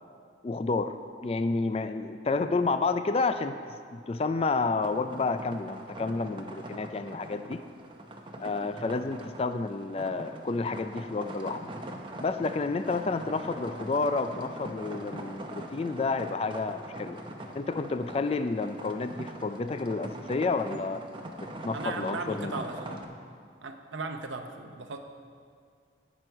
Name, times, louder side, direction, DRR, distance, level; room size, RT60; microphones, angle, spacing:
voice 1, 0.4-0.9 1.2-3.6 3.9-7.6 8.4-11.7 12.2-17.2 17.5-21.0 21.6-22.7, left 3 dB, 30° left, 9 dB, 0.3 m, -30 dB
sound 1, 4.8-23.0, right 1 dB, 25° right, 0.7 m, -43 dB
voice 2, 21.7-23.0 23.6-25.0, right 3 dB, 90° right, 5 dB, 0.7 m, -37 dB
17.5 x 6.1 x 4.6 m, 2.1 s
head